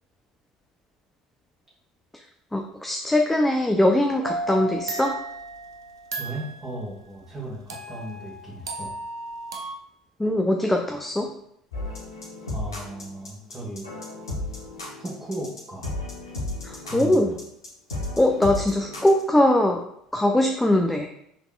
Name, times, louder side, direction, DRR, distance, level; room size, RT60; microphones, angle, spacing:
voice 1, 2.5-5.1 10.2-11.3 16.6-17.3 18.2-19.8 20.1-21.1, left 1 dB, 10° left, 2 dB, 0.4 m, -21 dB
sound 1, 4.2-6.7 7.7-9.7, right 2 dB, 85° right, 0.5 m, -34 dB
voice 2, 6.2-8.9 12.5-13.9 15.0-15.9 16.8-17.4, right 1 dB, 20° right, -5 dB, 1.4 m, -36 dB
sound 2, 11.7-19.2, left 2 dB, 85° left, 1.0 m, -34 dB
5.7 x 3.6 x 2.3 m, 0.74 s
figure-of-eight pair, 65°, 2 cm